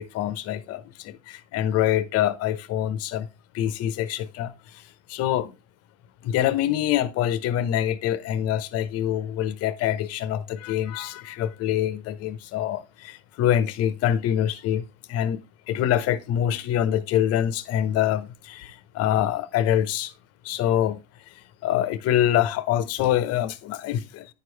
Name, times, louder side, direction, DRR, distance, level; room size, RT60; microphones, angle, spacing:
voice 1, 0.0-3.3 3.5-4.5 5.1-5.5 6.2-14.8 15.1-15.4 15.7-20.1 20.4-21.0 21.6-24.3, left 11 dB, 45° left, 0.9 m, -25 dB
10.5 x 4.6 x 3.3 m
hypercardioid pair, 100°, 34 cm